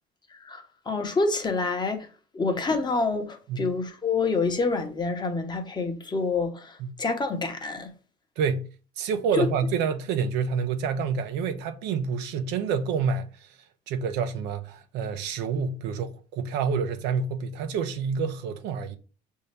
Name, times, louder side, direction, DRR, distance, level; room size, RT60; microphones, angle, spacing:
voice 1, 0.3-2.1 2.3-7.9 9.3-9.5, left 3 dB, 25° left, 0.8 m, -27 dB
voice 2, 8.4-8.7 9.0-13.5 13.9-19.0, right 6 dB, 90° right, 0.6 m, -28 dB
5.5 x 2.7 x 3.2 m
cardioid pair, 110°, 17 cm